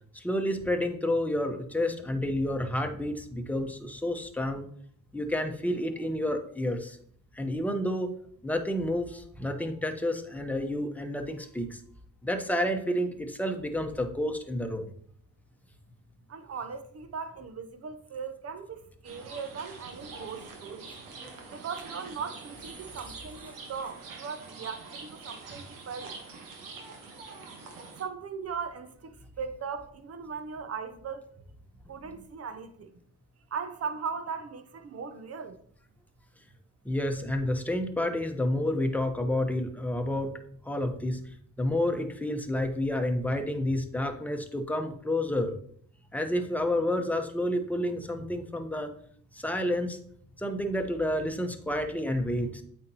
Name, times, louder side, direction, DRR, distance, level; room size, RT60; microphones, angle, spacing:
voice 1, 0.1-4.7 5.1-7.0 7.3-8.2 8.4-11.8 12.2-14.9 36.8-40.3 40.6-41.2 41.6-45.6 46.1-48.9 49.3-50.0 50.4-52.6, left 1 dB, 5° left, 0.9 m, -30 dB
voice 2, 16.3-20.9 21.5-26.1 28.0-31.2 31.9-32.9 33.5-35.6, right 6 dB, 50° right, 0.7 m, -38 dB
sound 1, 19.0-28.0, right 4 dB, 85° right, 1.2 m, -45 dB
8.2 x 4.4 x 2.9 m
cardioid pair, 70°, 32 cm